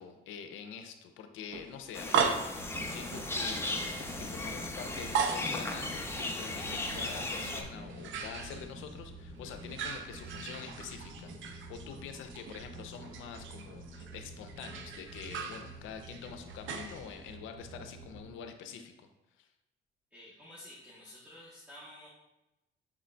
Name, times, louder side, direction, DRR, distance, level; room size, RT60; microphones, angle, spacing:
voice 1, 0.0-18.9 19.4-19.5, left 7 dB, 90° left, 7 dB, 0.5 m, -46 dB
sound 1, 1.5-9.1 9.4-17.4, right 6 dB, 75° right, 0.5 m, -38 dB
sound 2, 1.9-7.6, left 2 dB, 10° left, 0.5 m, -37 dB
sound 3, 2.4-18.3, right 1 dB, 35° right, 0.8 m, -48 dB
voice 2, 20.1-22.1, left 1 dB, 10° right, -7 dB, 1.0 m, -51 dB
6.1 x 3.6 x 2.2 m, 0.99 s
cardioid pair, 90°, 20 cm